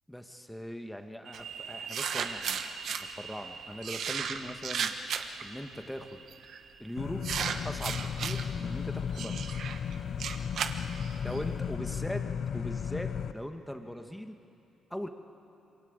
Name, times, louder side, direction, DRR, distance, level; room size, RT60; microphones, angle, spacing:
voice 1, 0.1-4.9 5.4-6.2 6.8-7.2 7.6-9.5 11.2-12.2 12.5-14.4 14.9-15.1, equal, 5° left, 5 dB, 1.8 m, -40 dB
sound 1, 1.2-8.7, right 6 dB, 85° right, 2.3 m, -47 dB
sound 2, 1.3-1.4 1.9-3.0 3.8-5.4 6.3-6.6 7.2-8.4 9.1-11.4, right 7 dB, 65° right, 1.3 m, -34 dB
sound 3, 7.0-13.3, left 7 dB, 60° left, 0.7 m, -35 dB
27.0 x 22.0 x 8.2 m, 2.7 s
cardioid pair, 90°, 0 cm